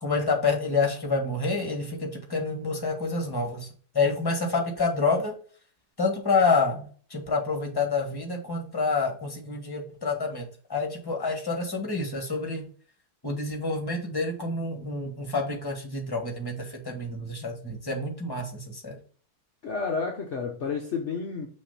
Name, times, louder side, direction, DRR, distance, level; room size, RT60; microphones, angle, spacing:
voice 1, 0.0-3.7 3.9-5.3 6.0-12.6 13.2-19.0, left 4 dB, 15° left, 1.0 m, -28 dB
voice 2, 19.6-21.5, left 5 dB, 65° left, 0.6 m, -30 dB
6.3 x 3.0 x 5.6 m
omnidirectional pair, 2.2 m